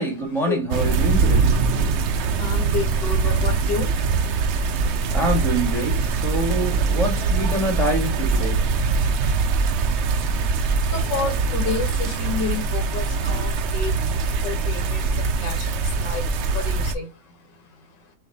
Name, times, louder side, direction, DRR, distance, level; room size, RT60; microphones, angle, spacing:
voice 1, 0.0-1.5 5.1-8.6, right 1 dB, ahead, 1.3 m, -25 dB
sound 1, 0.7-16.9, right 4 dB, 75° right, 0.6 m, -22 dB
voice 2, 2.1-5.2 10.4-18.1, left 5 dB, 90° left, 1.8 m, -31 dB
6.3 x 2.8 x 2.7 m
omnidirectional pair, 1.9 m